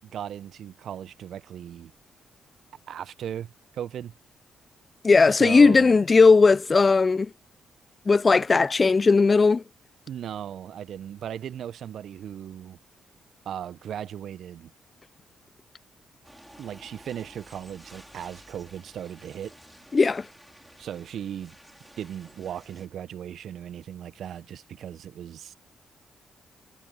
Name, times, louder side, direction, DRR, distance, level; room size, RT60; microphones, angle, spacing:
voice 1, 0.1-1.9 2.9-4.1 5.3-6.0 10.1-12.8 13.4-14.7 16.6-19.5 20.8-21.5 22.0-25.6, right 9 dB, 65° right, 1.0 m, -37 dB
voice 2, 5.0-7.3 8.1-9.6 19.9-20.2, left 4 dB, 40° left, 0.4 m, -17 dB
sound 1, 16.2-22.9, right 1 dB, 5° right, 5.0 m, -52 dB
hypercardioid pair, 40°, 0 cm